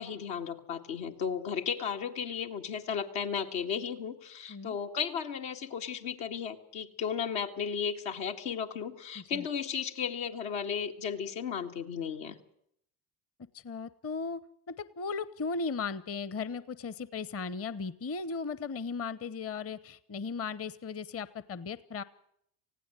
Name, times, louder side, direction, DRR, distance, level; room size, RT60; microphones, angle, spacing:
voice 1, 0.0-12.4, left 7 dB, 75° left, 3 dB, 2.1 m, -34 dB
voice 2, 13.5-14.4 14.7-22.0, left 4 dB, 30° left, 17 dB, 0.9 m, -36 dB
19.0 x 16.0 x 9.0 m, 0.71 s
hypercardioid pair, 70°, 50 cm